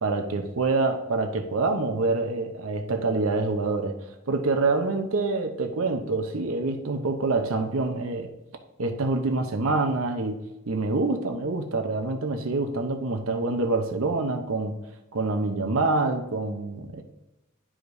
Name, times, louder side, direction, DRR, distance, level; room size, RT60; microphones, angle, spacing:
voice 1, 0.0-3.9 4.3-8.3 8.8-10.4 10.7-14.8 15.1-17.0, right 3 dB, 85° right, 5 dB, 0.7 m, -26 dB
11.0 x 5.0 x 2.6 m, 0.96 s
head